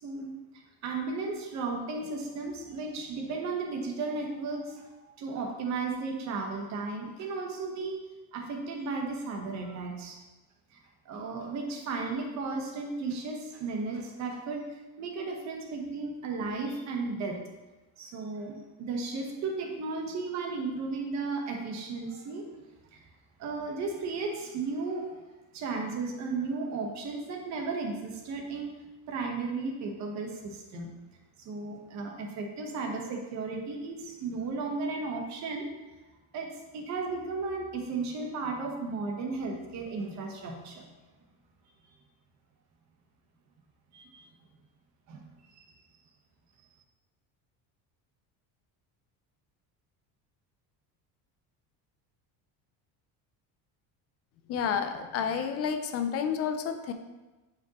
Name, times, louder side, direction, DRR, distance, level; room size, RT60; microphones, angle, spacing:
voice 1, 0.0-8.0 8.3-10.2 10.7-10.8 11.0-17.4 18.0-22.5 22.9-23.1 23.4-25.1 25.5-28.7 29.1-30.9 31.4-35.7 36.3-40.9 43.9-44.3 45.1-45.7, right 3 dB, 40° right, 2 dB, 1.1 m, -35 dB
voice 2, 54.5-56.9, left 7 dB, 35° left, 8 dB, 0.4 m, -30 dB
8.9 x 5.1 x 2.9 m, 1.1 s
cardioid pair, 175°, 42 cm